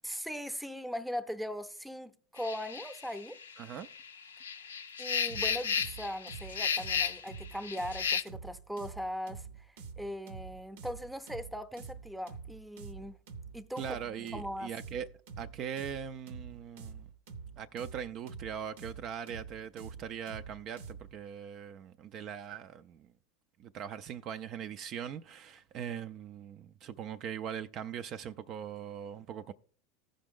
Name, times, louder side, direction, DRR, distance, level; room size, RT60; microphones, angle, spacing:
voice 1, 0.0-3.4 5.0-13.2 13.5-14.7, equal, ahead, 0.7 m, -40 dB
sound 1, 2.4-8.2, left 7 dB, 90° left, 0.4 m, -34 dB
voice 2, 3.6-3.9 13.8-15.1 15.4-17.1 17.6-23.1 23.6-29.5, right 8 dB, 45° right, 0.4 m, -41 dB
sound 2, 5.3-21.2, right 5 dB, 70° right, 0.8 m, -47 dB
14.5 x 5.1 x 3.7 m
hypercardioid pair, 90°, 0 cm